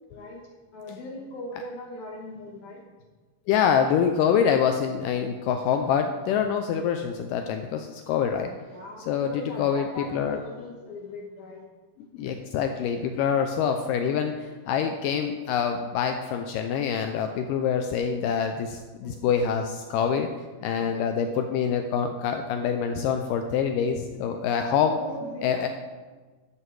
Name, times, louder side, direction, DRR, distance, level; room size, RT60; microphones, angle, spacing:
voice 1, 0.1-0.4 0.7-2.8 8.7-11.6 12.0-12.3 19.0-19.3 20.8-21.3 25.0-25.7, left 1 dB, 65° left, -1 dB, 2.1 m, -40 dB
voice 2, 3.5-8.5 9.0-10.4 12.1-20.3 20.6-25.0 25.4-25.7, left 7 dB, 90° left, 6 dB, 1.9 m, -25 dB
11.0 x 7.8 x 4.7 m, 1.3 s
omnidirectional pair, 4.5 m